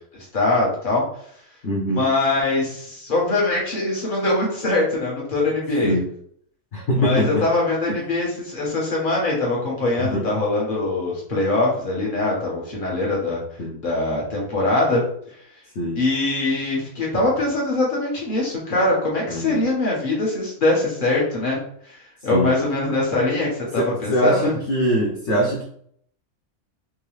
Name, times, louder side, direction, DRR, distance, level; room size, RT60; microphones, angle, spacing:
voice 1, 0.3-1.0 2.0-6.0 6.9-13.4 13.8-15.0 16.0-24.6, left 2 dB, 35° left, -3 dB, 1.4 m, -22 dB
voice 2, 1.6-2.0 5.8-6.0 6.7-7.4 10.0-10.2 13.6-13.7 15.8-16.0 19.3-19.6 22.3-22.5 23.7-25.6, equal, 55° left, -4 dB, 1.1 m, -22 dB
3.6 x 3.0 x 3.2 m, 0.65 s
omnidirectional pair, 1.5 m